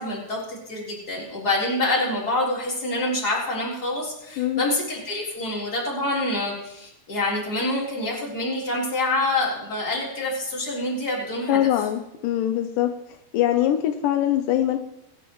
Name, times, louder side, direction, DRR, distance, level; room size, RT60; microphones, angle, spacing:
voice 1, 0.0-11.6, left 2 dB, 25° left, -4 dB, 3.9 m, -26 dB
voice 2, 11.5-12.9 13.3-14.8, left 12 dB, 85° left, 7 dB, 1.9 m, -22 dB
23.0 x 10.5 x 3.1 m, 0.89 s
omnidirectional pair, 4.6 m